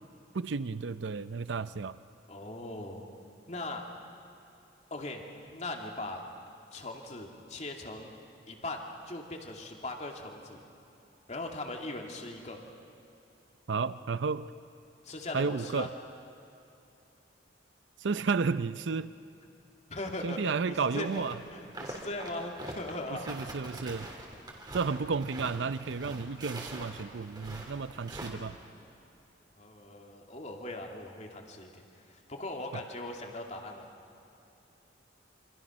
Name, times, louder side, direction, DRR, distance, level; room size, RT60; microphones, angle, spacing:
voice 1, 0.3-2.0 13.7-14.5 15.3-15.9 18.0-19.1 20.2-21.3 23.3-24.1 24.7-28.6, right 4 dB, 70° right, 14 dB, 0.6 m, -32 dB
voice 2, 2.3-3.1 3.5-3.8 4.9-5.2 5.5-6.2 6.7-8.1 8.5-10.6 11.3-12.6 15.0-15.9 19.9-21.2 21.5-23.3 24.0-24.1 29.6-33.9, left 2 dB, 35° left, 2 dB, 2.6 m, -39 dB
sound 1, 20.9-21.3 21.6-28.3, right 1 dB, 20° right, 3.2 m, -44 dB
28.0 x 26.0 x 6.3 m, 2.8 s
head